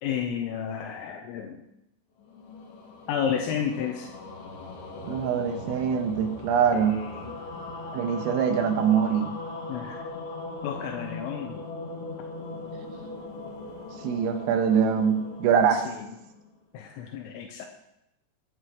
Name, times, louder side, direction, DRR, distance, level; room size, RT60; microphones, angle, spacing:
voice 1, 0.0-1.6 3.1-4.1 6.7-7.4 9.7-10.1 10.6-11.7 15.7-16.2 16.7-17.7, left 8 dB, 80° left, 3 dB, 3.5 m, -32 dB
sound 1, 2.2-16.6, left 3 dB, 60° left, 3.5 m, -40 dB
voice 2, 5.0-7.0 7.9-9.4 14.0-15.9, right 7 dB, 85° right, 5 dB, 3.9 m, -23 dB
27.0 x 10.0 x 3.1 m, 0.84 s
omnidirectional pair, 5.9 m